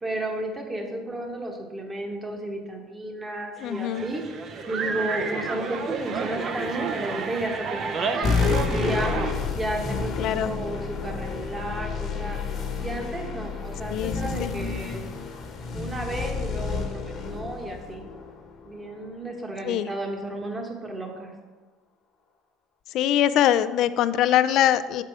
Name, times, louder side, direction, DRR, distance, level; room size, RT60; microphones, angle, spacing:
voice 1, 0.0-4.2 4.7-9.1 9.6-12.4 12.8-15.0 15.7-18.0 18.6-21.3, right 1 dB, 15° right, 2 dB, 1.1 m, -33 dB
voice 2, 3.6-4.0 10.2-10.5 13.9-14.1 14.4-14.5 19.7-19.9 22.9-25.0, left 11 dB, 60° left, 14 dB, 0.3 m, -22 dB
sound 1, 3.6-9.3, right 5 dB, 40° right, 0.6 m, -30 dB
sound 2, 8.2-19.1, left 5 dB, 40° left, 1.1 m, -30 dB
6.6 x 4.8 x 4.8 m, 1.3 s
cardioid pair, 120°, 0 cm